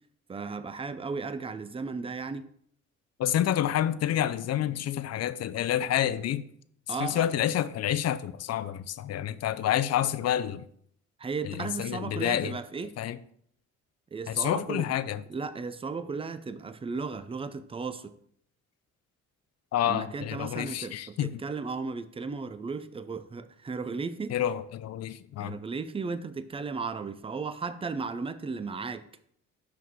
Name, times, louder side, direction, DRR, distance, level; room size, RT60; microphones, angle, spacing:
voice 1, 0.3-2.5 6.9-7.3 11.2-12.9 14.1-14.9 15.3-18.1 19.9-24.4 25.4-29.1, right 4 dB, 20° right, 0.5 m, -35 dB
voice 2, 3.2-6.4 6.9-10.7 11.4-12.6 13.0-13.2 14.3-15.2 19.7-21.4 24.3-25.6, left 11 dB, 55° left, 0.5 m, -28 dB
5.7 x 4.7 x 4.7 m
cardioid pair, 90°, 30 cm